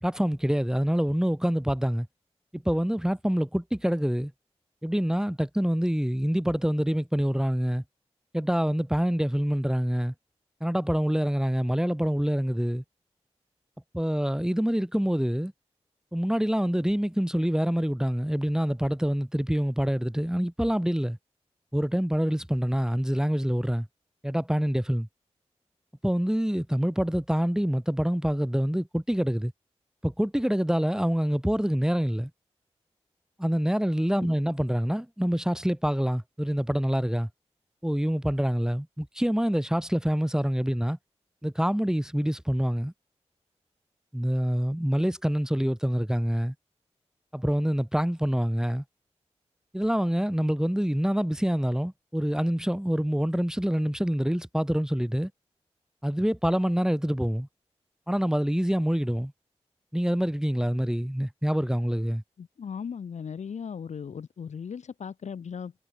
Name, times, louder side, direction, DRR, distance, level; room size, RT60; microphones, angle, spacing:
voice 1, 0.0-2.1 2.5-4.3 4.8-7.8 8.3-10.1 10.6-12.8 13.9-15.5 16.1-21.2 21.7-23.9 24.2-25.1 26.0-29.5 30.0-32.3 33.4-37.3 37.8-41.0 41.4-42.9 44.1-46.5 47.3-48.8 49.7-55.3 56.0-57.5 58.1-59.3 59.9-62.2, equal, 5° right, 1.4 m, -26 dB
voice 2, 62.4-65.7, left 6 dB, 85° left, 1.3 m, -37 dB
cardioid pair, 40°, 12 cm